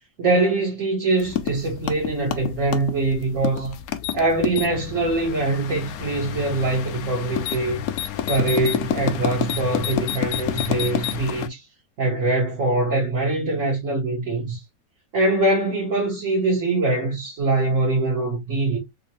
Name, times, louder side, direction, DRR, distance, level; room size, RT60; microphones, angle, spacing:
voice 1, 0.2-3.7 4.1-7.8 8.3-11.6 12.0-14.6 15.1-18.8, right 2 dB, 50° right, 1.4 m, -23 dB
sound 1, 1.2-11.5, left 10 dB, 70° left, 0.9 m, -29 dB
3.6 x 2.7 x 2.9 m
omnidirectional pair, 2.0 m